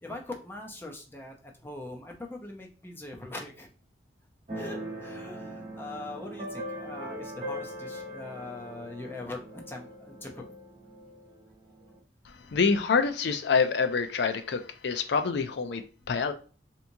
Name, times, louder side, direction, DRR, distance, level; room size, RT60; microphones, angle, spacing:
voice 1, 0.0-3.7 4.6-10.4, left 2 dB, 10° left, 1 dB, 0.5 m, -41 dB
Keyboard (musical), 4.5-12.0, equal, 35° right, 1.2 m, -41 dB
voice 2, 12.3-16.3, left 5 dB, 65° left, 8 dB, 0.4 m, -27 dB
3.4 x 2.9 x 2.6 m, 0.39 s
head